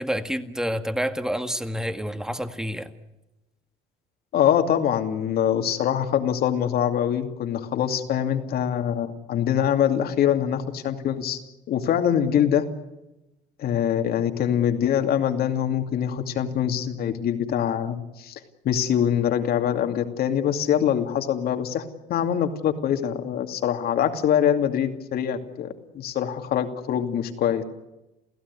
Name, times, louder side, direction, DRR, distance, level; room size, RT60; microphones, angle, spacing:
voice 1, 0.0-2.9, equal, 5° right, 9 dB, 1.8 m, -28 dB
voice 2, 4.3-11.4 11.7-12.7 13.6-18.4 18.6-21.8 22.1-27.6, left 9 dB, 65° left, 6 dB, 2.6 m, -24 dB
29.0 x 16.0 x 9.7 m, 0.99 s
cardioid pair, 110°, 17 cm